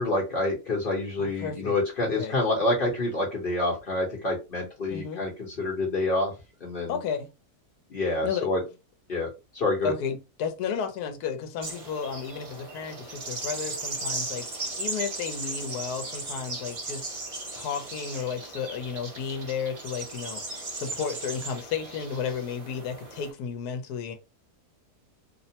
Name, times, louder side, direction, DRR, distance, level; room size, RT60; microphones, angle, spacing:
voice 1, 0.0-6.3 6.6-7.0 7.9-8.6 9.1-9.3 9.5-9.9, left 2 dB, 40° left, 1.0 m, -27 dB
voice 2, 1.2-1.8 2.0-2.4 4.9-5.2 6.9-7.3 8.2-8.5 9.8-24.2, left 6 dB, 80° left, 1.1 m, -33 dB
sound 1, 11.6-23.3, right 2 dB, 65° right, 0.3 m, -37 dB
2.8 x 2.1 x 2.7 m
omnidirectional pair, 1.7 m